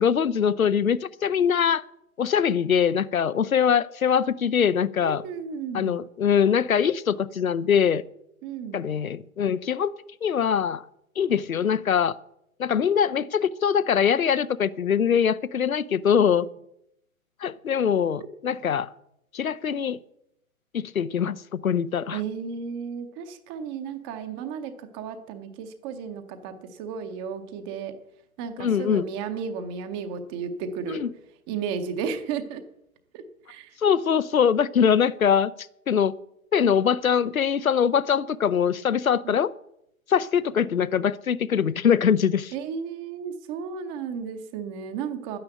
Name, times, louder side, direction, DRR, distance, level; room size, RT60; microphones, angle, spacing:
voice 1, 0.0-1.8 2.2-5.2 5.7-8.0 8.7-9.9 10.2-10.8 11.2-12.1 12.6-16.5 17.4-18.9 19.3-20.0 20.7-22.2 28.6-29.1 31.0-31.1 33.8-35.5 35.9-36.1 36.5-39.5 40.1-42.5, left 7 dB, 75° left, 0.8 m, -23 dB
voice 2, 5.0-6.0 8.4-8.8 22.1-27.9 28.4-31.0 31.5-32.6 33.1-33.2 33.5-33.8 39.2-39.3 42.5-45.4, right 6 dB, 15° right, 0.6 m, -33 dB
11.5 x 9.8 x 7.8 m
figure-of-eight pair, 120°, 42 cm